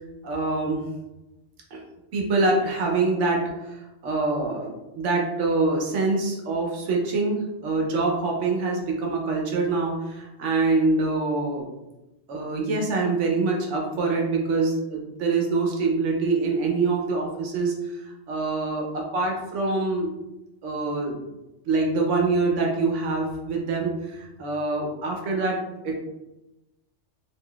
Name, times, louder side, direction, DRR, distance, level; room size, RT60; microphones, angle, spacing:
voice 1, 0.2-0.8 1.7-1.8 2.1-11.7 12.3-20.1 20.6-21.2 21.7-25.6 25.8-26.0, right 3 dB, 85° right, 0 dB, 1.0 m, -25 dB
3.7 x 2.7 x 2.2 m, 0.98 s
omnidirectional pair, 1.2 m